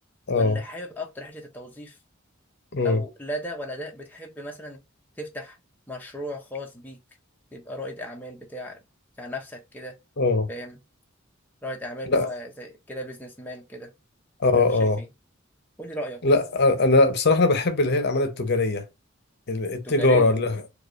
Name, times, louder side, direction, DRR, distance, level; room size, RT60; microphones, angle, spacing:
voice 1, 0.3-2.0 2.8-4.8 5.2-5.6 5.9-7.0 7.5-8.8 9.2-10.0 10.5-10.8 11.6-13.9 14.4-15.1 15.8-16.4 19.8-20.3, equal, 10° left, 0.6 m, -36 dB
voice 2, 10.2-10.5 12.0-12.3 14.4-15.0 16.2-18.8 19.5-20.6, left 2 dB, 55° left, 0.7 m, -21 dB
4.6 x 2.3 x 2.4 m
head